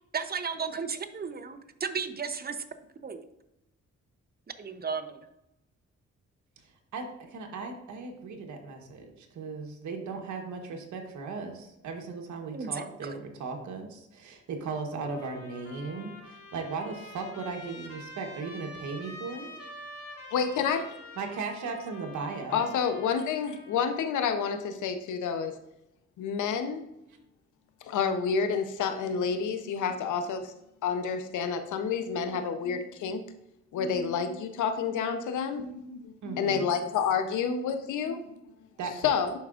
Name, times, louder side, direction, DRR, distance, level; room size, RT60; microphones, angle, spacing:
voice 1, 0.1-2.6 3.0-3.2 4.6-5.3 12.5-13.2, right 5 dB, 35° right, 9 dB, 0.8 m, -34 dB
voice 2, 6.9-19.5 21.2-22.7 36.2-36.7 38.8-39.2, right 4 dB, 80° right, 2 dB, 1.2 m, -37 dB
Trumpet, 15.0-24.2, left 1 dB, 50° left, 2.3 m, -47 dB
voice 3, 20.3-20.8 22.5-25.5 26.2-26.8 27.9-30.5 30.8-33.3 33.7-38.2 39.0-39.3, left 6 dB, 90° left, 8 dB, 0.8 m, -29 dB
11.5 x 4.8 x 2.5 m, 0.85 s
cardioid pair, 70°, 29 cm